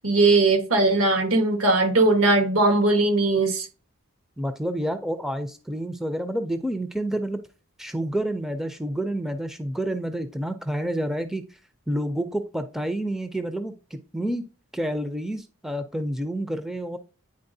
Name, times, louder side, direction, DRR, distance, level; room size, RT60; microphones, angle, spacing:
voice 1, 0.0-3.7, right 2 dB, 80° right, 1.3 m, -19 dB
voice 2, 4.4-7.4 7.8-11.5 11.9-14.4 14.7-17.0, right 1 dB, ahead, 0.4 m, -29 dB
9.6 x 4.0 x 2.6 m
head